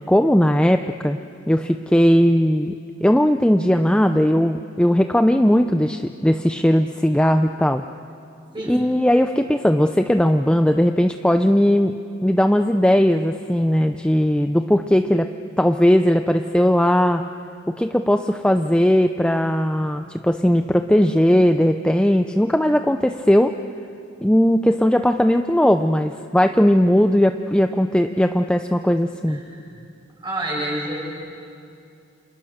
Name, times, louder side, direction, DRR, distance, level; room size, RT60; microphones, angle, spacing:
voice 1, 0.1-1.2 1.5-2.7 3.0-7.8 8.7-11.9 12.2-15.3 15.6-17.2 17.8-23.5 24.2-29.4, equal, 5° left, 6 dB, 0.6 m, -18 dB
voice 2, 8.5-8.9 29.3-29.6 30.2-31.0, right 1 dB, 25° right, -3 dB, 7.4 m, -28 dB
30.0 x 27.5 x 6.6 m, 2.5 s
head